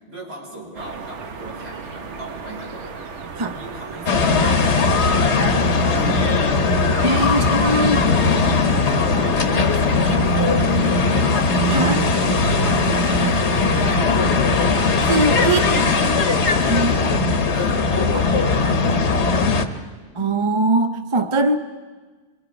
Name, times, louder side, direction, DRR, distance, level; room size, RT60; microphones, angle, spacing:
voice 1, 0.1-3.1 3.4-4.5 4.9-6.9 7.3-8.7 9.4-10.9 11.6-14.4 15.5-19.9, right 1 dB, 60° right, -4 dB, 6.9 m, -37 dB
sound 1, 0.7-14.0, right 5 dB, 90° right, 1.3 m, -35 dB
sound 2, 4.1-19.7, left 3 dB, 75° left, 1.4 m, -19 dB
voice 2, 7.0-8.1 9.2-9.4 11.7-12.0 15.0-15.7 16.7-16.9 18.1-18.3 20.2-21.6, right 2 dB, 30° right, 8 dB, 0.7 m, -21 dB
28.0 x 23.0 x 5.2 m, 1.4 s
omnidirectional pair, 1.2 m